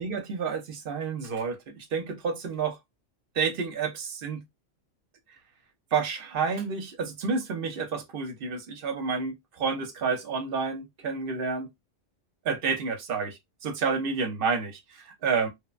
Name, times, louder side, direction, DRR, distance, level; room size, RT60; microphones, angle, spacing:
voice 1, 0.0-2.8 3.3-4.4 5.9-11.7 12.4-15.5, right 5 dB, 55° right, 0.8 m, -30 dB
3.1 x 2.1 x 2.3 m
omnidirectional pair, 1.3 m